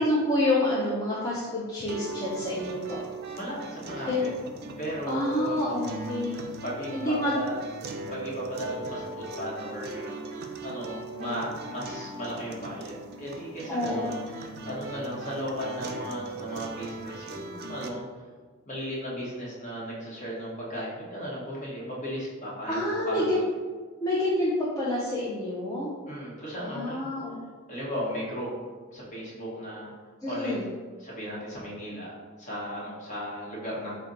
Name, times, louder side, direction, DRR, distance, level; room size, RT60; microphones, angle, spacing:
voice 1, 0.0-3.0 4.1-4.3 5.1-6.4 6.9-7.4 11.2-11.4 13.7-14.2 22.7-23.5 24.0-25.9 26.6-27.4 30.2-30.7, left 1 dB, 15° left, -7 dB, 0.4 m, -28 dB
sound 1, 1.9-17.9, right 2 dB, 50° right, 0.3 m, -39 dB
voice 2, 3.3-4.3 4.8-6.0 6.6-18.0 18.7-22.8 23.0-23.4 26.1-27.0 27.7-28.5 28.9-29.9 30.3-30.6 31.0-32.1 32.4-33.9, equal, 35° left, -6 dB, 1.1 m, -36 dB
4.0 x 2.2 x 3.8 m, 1.4 s
head